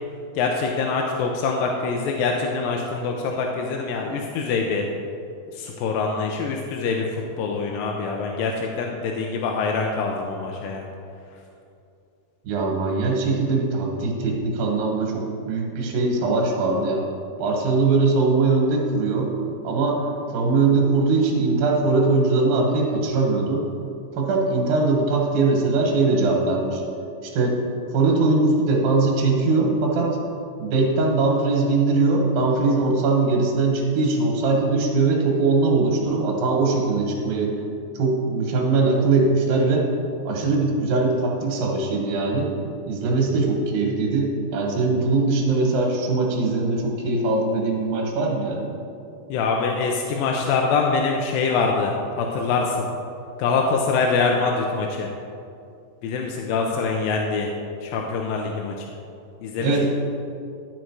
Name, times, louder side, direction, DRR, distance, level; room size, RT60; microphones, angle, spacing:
voice 1, 0.4-4.9 5.5-10.9 49.3-52.9 53.4-55.1 56.0-57.5 57.8-58.9 59.4-59.9, left 4 dB, 85° left, 1 dB, 2.4 m, -24 dB
voice 2, 12.4-17.0 17.4-19.3 19.6-20.0 20.3-23.6 24.2-26.8 27.2-27.6 27.9-30.2 30.6-37.5 37.9-39.9 40.3-42.5 42.9-48.7 59.6-59.9, right 3 dB, 85° right, 0 dB, 3.1 m, -21 dB
12.5 x 5.1 x 4.6 m, 2.6 s
omnidirectional pair, 4.0 m